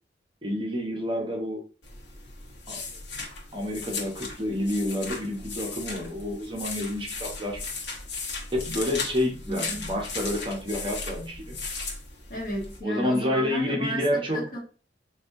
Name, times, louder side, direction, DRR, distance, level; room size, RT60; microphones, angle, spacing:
voice 1, 0.4-1.6 2.7-2.8 3.5-7.6 8.5-11.6 12.8-14.5, left 1 dB, 30° right, 0 dB, 0.8 m, -29 dB
sound 1, 1.8-12.8, left 4 dB, 80° left, 1.0 m, -37 dB
voice 2, 9.5-9.9 12.3-14.6, equal, 55° left, -2 dB, 1.4 m, -33 dB
4.1 x 2.6 x 2.5 m, 0.37 s
head